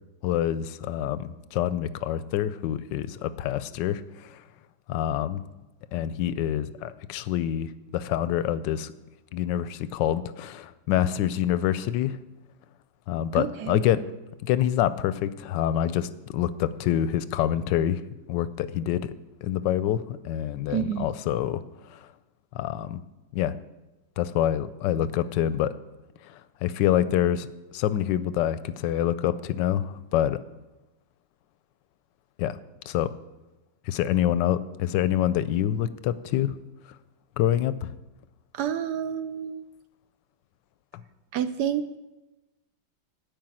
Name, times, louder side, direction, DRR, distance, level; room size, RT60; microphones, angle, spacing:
voice 1, 0.2-4.4 4.9-5.4 5.9-8.9 9.3-12.2 13.1-14.0 14.4-18.0 18.3-19.1 19.4-21.6 21.9-22.1 22.5-23.0 23.3-23.6 24.2-25.7 26.2-30.4 32.4-32.6 32.9-33.1 33.9-36.5 37.4-37.9 40.9-41.0, left 11 dB, 75° left, 15 dB, 1.1 m, -26 dB
voice 2, 13.3-13.8 20.7-21.1 38.5-39.6 41.3-41.9, right 9 dB, 70° right, 11 dB, 1.0 m, -29 dB
12.5 x 5.3 x 8.9 m, 1.1 s
omnidirectional pair, 2.1 m